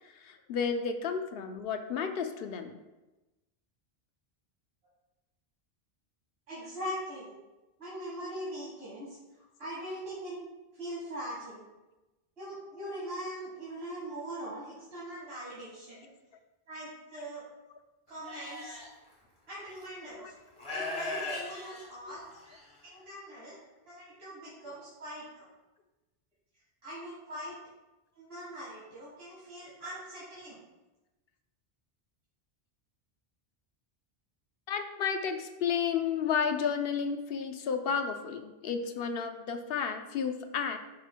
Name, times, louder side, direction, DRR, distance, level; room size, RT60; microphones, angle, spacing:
voice 1, 0.0-2.8 20.1-20.3 22.1-22.2 34.7-40.8, left 6 dB, 70° left, 6 dB, 0.8 m, -32 dB
voice 2, 6.5-7.4 7.8-9.2 9.6-10.4 10.7-11.6 12.4-16.1 16.7-17.5 18.1-18.8 19.5-20.3 20.7-22.2 22.8-25.5 26.8-27.6 28.1-30.6, equal, 75° right, -8 dB, 1.8 m, -41 dB
Livestock farm animals working animals, 18.2-18.9 19.8-19.9 20.6-22.6, left 2 dB, 30° left, 1.7 m, -37 dB
10.5 x 5.0 x 2.2 m, 1.1 s
omnidirectional pair, 1.0 m